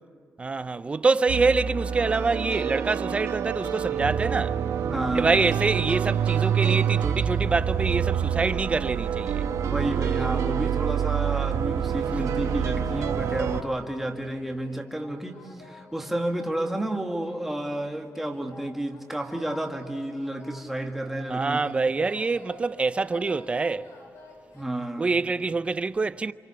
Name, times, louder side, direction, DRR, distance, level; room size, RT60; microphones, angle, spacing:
voice 1, 0.4-4.6 5.1-9.4 21.3-23.9 25.0-26.3, right 3 dB, 25° right, 0.6 m, -25 dB
sound 1, 1.3-13.6, right 8 dB, 85° right, 1.3 m, -27 dB
voice 2, 4.8-5.4 9.5-21.6 24.5-25.1, right 1 dB, 5° right, 1.8 m, -31 dB
sound 2, 12.4-24.6, left 2 dB, 65° left, 5.1 m, -49 dB
29.0 x 27.5 x 7.0 m
wide cardioid pair, 175°, 5 cm